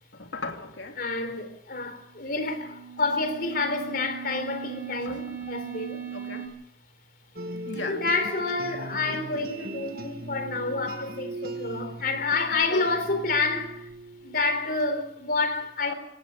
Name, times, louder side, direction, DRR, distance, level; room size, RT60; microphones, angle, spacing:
voice 1, 0.1-1.0 5.0-5.2 6.1-6.5 7.7-8.0 12.7-12.9, left 3 dB, 85° left, 2.9 m, -36 dB
voice 2, 1.0-6.0 7.9-13.9 14.2-15.9, left 3 dB, 55° left, 3.9 m, -28 dB
sound 1, 2.1-6.5, right 7 dB, 15° right, 6.9 m, -39 dB
sound 2, 7.4-14.9, right 2 dB, 55° right, 1.5 m, -39 dB
24.5 x 19.0 x 6.8 m
head